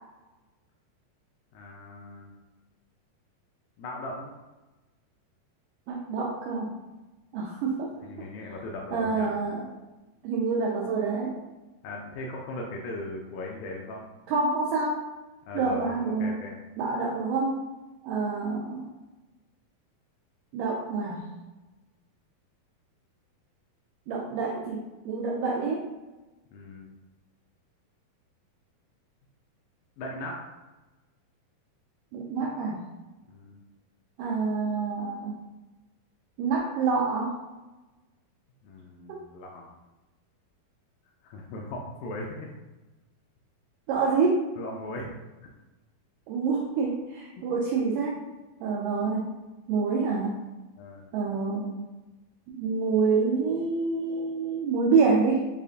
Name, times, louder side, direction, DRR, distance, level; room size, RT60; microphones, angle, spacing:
voice 1, 1.5-2.3 3.8-4.3 8.0-9.3 11.8-14.0 15.5-16.6 26.5-26.9 30.0-30.4 33.3-33.6 38.6-39.7 41.2-42.5 44.6-45.1 47.4-47.5 50.8-51.1, left 2 dB, 80° left, -1 dB, 2.0 m, -38 dB
voice 2, 5.9-6.8 7.3-7.9 8.9-9.7 10.2-11.4 14.3-15.0 15.5-16.4 16.8-17.6 18.0-18.9 20.5-21.2 24.1-25.9 32.1-32.8 34.2-35.4 36.4-37.4 39.1-39.2 43.9-44.5 46.3-48.2 48.6-49.3 49.7-50.4 51.1-51.8 52.5-55.5, right 4 dB, 85° right, -3 dB, 1.9 m, -27 dB
6.7 x 2.4 x 2.4 m, 1.1 s
omnidirectional pair, 4.3 m